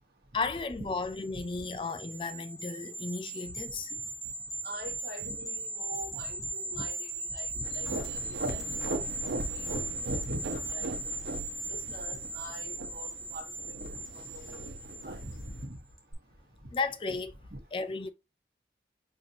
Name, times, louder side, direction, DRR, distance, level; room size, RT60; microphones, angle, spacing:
voice 1, 0.3-3.9 16.7-17.3 17.7-18.1, left 4 dB, 30° left, 0.3 m, -34 dB
sound 1, 1.0-15.6 16.0-16.1, right 2 dB, ahead, 0.9 m, -38 dB
voice 2, 4.6-11.1 11.6-15.8 16.6-16.7 17.5-17.6, equal, 60° right, 1.2 m, -44 dB
sound 2, 7.6-15.7, right 2 dB, 90° right, 0.9 m, -39 dB
5.7 x 2.6 x 2.7 m
head